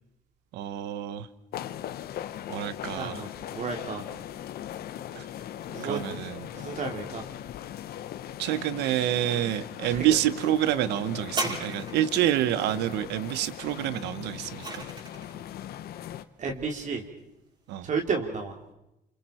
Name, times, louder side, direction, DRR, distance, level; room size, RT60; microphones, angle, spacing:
voice 1, 0.5-1.3 2.5-3.2 5.1-5.3 5.8-6.5 8.4-14.8 17.7-17.9, right 12 dB, 85° right, 15 dB, 1.1 m, -28 dB
sound 1, 1.5-16.2, left 11 dB, 65° left, 1.1 m, -39 dB
voice 2, 2.9-4.0 5.7-6.2 6.5-7.2 9.9-10.0 16.4-17.0 17.8-18.5, right 5 dB, 45° right, 3 dB, 2.9 m, -32 dB
sound 2, 11.3-12.3 14.0-15.4 16.2-16.3, right 2 dB, 30° right, 5.7 m, -35 dB
28.5 x 28.5 x 4.4 m, 0.89 s
cardioid pair, 110°, 17 cm